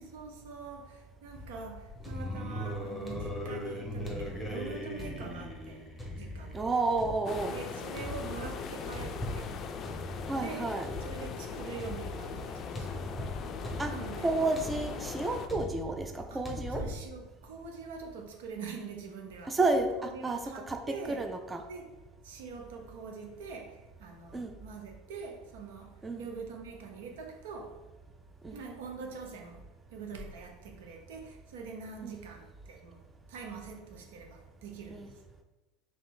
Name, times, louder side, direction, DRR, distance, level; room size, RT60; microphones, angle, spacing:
voice 1, 0.0-5.9 6.1-6.6 7.5-9.5 10.3-10.8 11.0-13.1 13.8-14.3 16.3-19.6 19.9-21.3 21.7-22.0 22.2-27.8 28.5-29.6 29.9-33.0 33.3-35.2, right 4 dB, 80° right, 0.8 m, -44 dB
sound 1, 1.3-17.1, left 1 dB, 5° left, 1.0 m, -40 dB
voice 2, 6.5-7.5 10.3-10.9 13.8-13.9 14.2-16.8 19.5-20.4 20.7-20.8 21.1-21.6 24.3-24.5 26.0-26.2 28.4-28.6 32.0-32.1 34.9-35.1, right 3 dB, 15° right, 0.5 m, -31 dB
sound 2, 7.2-15.5, left 6 dB, 40° left, 0.4 m, -40 dB
3.2 x 3.1 x 4.7 m
supercardioid pair, 100°, 0 cm